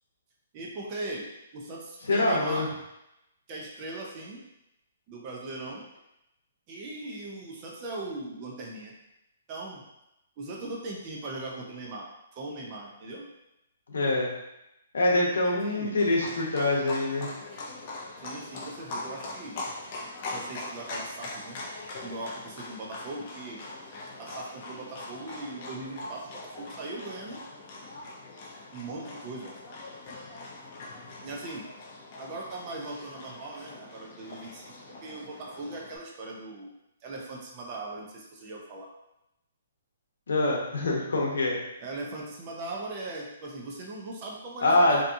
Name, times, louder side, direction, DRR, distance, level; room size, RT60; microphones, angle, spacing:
voice 1, 0.5-2.7 3.5-4.4 5.1-5.8 6.7-8.9 9.5-9.8 10.4-12.1 12.3-13.3 15.2-16.0 18.2-19.6 20.3-21.6 22.0-23.6 24.2-27.4 28.7-29.5 31.2-31.7 32.2-36.7 37.0-38.9 41.8-45.0, right 2 dB, 30° right, -2 dB, 0.5 m, -39 dB
voice 2, 2.1-2.7 13.9-14.3 14.9-17.3 40.3-41.6 44.6-45.0, left 2 dB, 85° left, -2 dB, 0.7 m, -24 dB
Livestock farm animals working animals, 16.0-36.0, left 2 dB, 35° left, 0.5 m, -42 dB
2.7 x 2.3 x 2.6 m, 0.88 s
hypercardioid pair, 160°, 0 cm